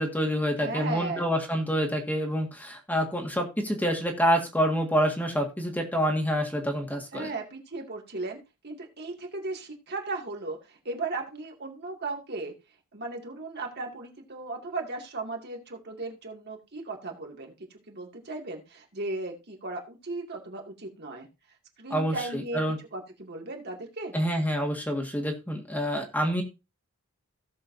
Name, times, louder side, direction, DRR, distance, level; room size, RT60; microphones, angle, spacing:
voice 1, 0.0-7.3 21.9-22.8 24.1-26.4, equal, 10° left, 2 dB, 1.8 m, -27 dB
voice 2, 0.6-1.3 7.1-12.5 12.9-17.5 17.9-21.3 21.8-22.6 22.9-24.1, right 3 dB, 50° right, 1 dB, 2.4 m, -36 dB
17.0 x 6.8 x 2.7 m, 0.26 s
head